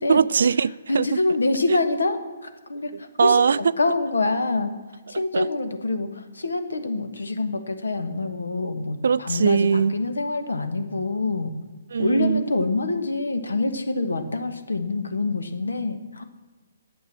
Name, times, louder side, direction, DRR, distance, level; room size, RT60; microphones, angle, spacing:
voice 1, 0.1-1.0 3.2-3.6 5.3-5.4 9.0-9.9 11.9-12.4, right 6 dB, 70° right, 20 dB, 0.3 m, -20 dB
voice 2, 0.9-4.7 5.1-11.6 12.0-16.2, left 2 dB, 90° left, 9 dB, 1.4 m, -26 dB
9.6 x 7.8 x 7.6 m, 1.4 s
hypercardioid pair, 140°, 0 cm